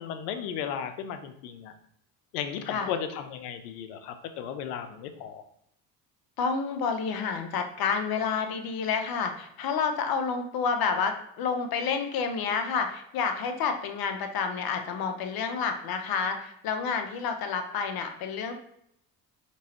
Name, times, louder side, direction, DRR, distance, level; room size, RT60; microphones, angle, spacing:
voice 1, 0.0-1.7 2.3-5.4, left 8 dB, 90° left, 9 dB, 0.6 m, -35 dB
voice 2, 2.7-3.0 6.4-18.5, left 5 dB, 50° left, 6 dB, 0.8 m, -29 dB
4.6 x 3.0 x 2.9 m, 0.73 s
supercardioid pair, 75°, 45 cm